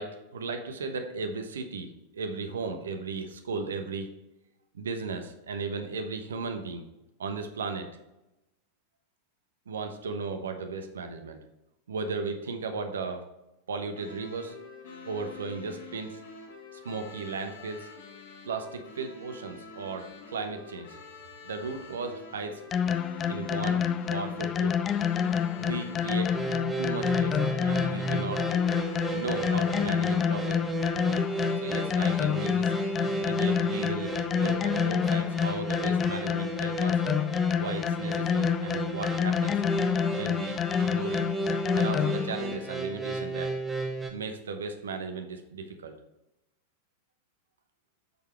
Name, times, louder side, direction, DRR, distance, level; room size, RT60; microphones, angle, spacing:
voice 1, 0.0-4.1 4.7-6.8 7.2-7.9 9.7-11.4 11.9-13.2 13.7-14.6 15.0-16.2 16.7-17.9 18.4-21.0 21.4-22.6 23.3-23.8 24.1-24.8 25.6-26.4 26.8-28.5 29.1-30.7 31.5-32.7 33.2-37.0 37.5-39.6 40.1-41.2 41.7-43.5 44.1-46.0, right 4 dB, 65° right, 6 dB, 1.0 m, -36 dB
sound 1, 13.9-29.9, left 4 dB, 60° left, 2.4 m, -47 dB
sound 2, 22.7-42.4, left 8 dB, 25° left, 0.4 m, -28 dB
sound 3, 26.3-44.1, right 2 dB, 15° right, 1.1 m, -33 dB
8.1 x 6.7 x 3.2 m, 0.95 s
figure-of-eight pair, 90°, 0 cm